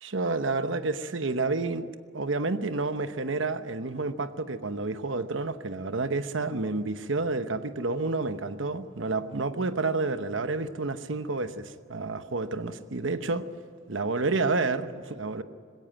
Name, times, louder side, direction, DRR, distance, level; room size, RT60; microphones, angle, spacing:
voice 1, 0.0-1.9 2.1-13.5 13.9-15.4, right 3 dB, 75° right, 1.0 m, -29 dB
20.5 x 17.0 x 9.9 m
head